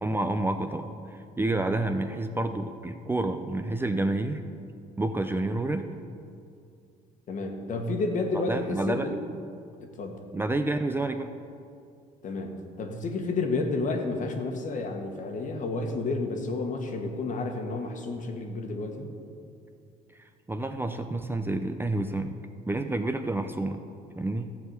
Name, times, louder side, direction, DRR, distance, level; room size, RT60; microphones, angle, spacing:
voice 1, 0.0-4.4 5.0-5.9 8.3-9.1 10.3-11.3 20.5-22.4 22.7-23.8 24.2-24.5, right 2 dB, 15° right, 6 dB, 0.5 m, -29 dB
voice 2, 7.3-9.2 9.8-10.3 12.2-19.1, left 3 dB, 50° left, 4 dB, 1.4 m, -31 dB
13.5 x 4.7 x 8.0 m, 2.4 s
cardioid pair, 110°, 17 cm